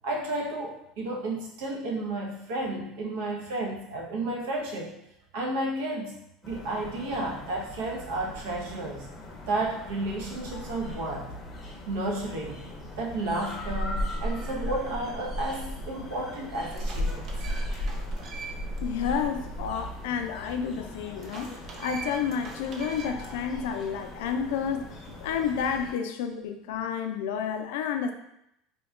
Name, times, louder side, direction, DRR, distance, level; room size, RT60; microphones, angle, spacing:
voice 1, 0.0-4.9 5.3-6.2 6.4-9.1 9.5-11.3 11.9-12.6 13.0-17.3, right 2 dB, 80° right, 0 dB, 0.7 m, -32 dB
sound 1, 6.4-25.9, equal, 20° left, 0.6 m, -37 dB
sound 2, 15.8-15.9 16.4-18.8 19.2-19.3 21.2-23.3, right 4 dB, 35° right, 0.4 m, -43 dB
voice 2, 18.8-28.1, left 7 dB, 90° left, 6 dB, 0.3 m, -30 dB
2.8 x 2.2 x 3.5 m, 0.80 s
cardioid pair, 160°, 0 cm